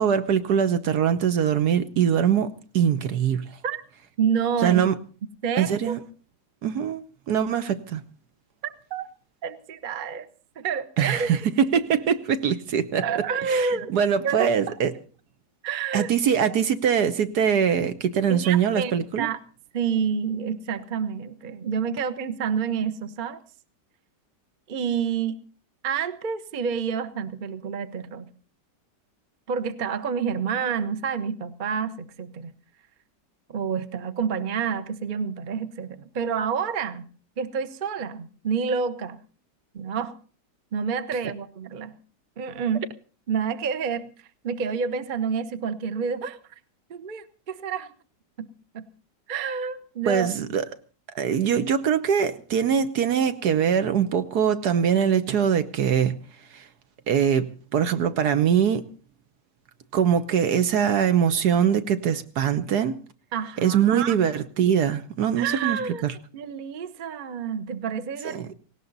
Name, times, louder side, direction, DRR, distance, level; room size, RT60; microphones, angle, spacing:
voice 1, 0.0-2.5 2.7-3.5 4.6-4.9 5.6-6.0 6.6-8.0 11.0-13.0 13.5-14.9 15.9-19.3 50.0-50.6 51.1-56.2 56.5-56.6 57.1-58.9 59.9-63.0 63.6-66.1 68.2-68.5, right 8 dB, 65° right, 1.4 m, -22 dB
voice 2, 4.2-4.8 5.4-6.0 8.6-9.1 9.4-10.3 10.6-11.4 13.0-14.0 14.2-14.5 15.6-16.1 18.3-18.9 19.2-19.4 19.7-23.4 24.7-25.4 25.8-28.3 29.5-32.5 33.5-37.0 37.4-39.2 39.7-40.2 40.7-41.9 42.4-42.9 43.3-44.1 44.4-46.4 46.9-47.9 48.4-48.5 48.7-48.8 49.3-50.5 63.3-64.2 65.4-68.5, right 6 dB, 35° right, 0.9 m, -28 dB
18.0 x 18.0 x 4.0 m
omnidirectional pair, 1.9 m